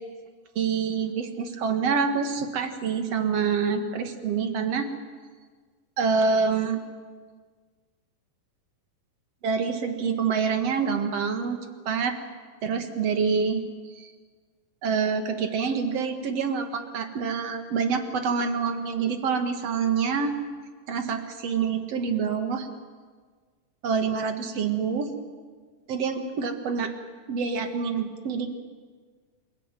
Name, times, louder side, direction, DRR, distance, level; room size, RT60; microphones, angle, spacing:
voice 1, 0.6-4.9 6.0-6.8 9.4-11.6 11.9-12.2 12.6-13.6 13.9-14.1 14.8-20.3 20.9-22.7 23.8-25.1 25.9-26.9 27.3-28.5, right 5 dB, 50° right, 7 dB, 2.6 m, -26 dB
28.0 x 17.5 x 9.1 m, 1.5 s
omnidirectional pair, 4.0 m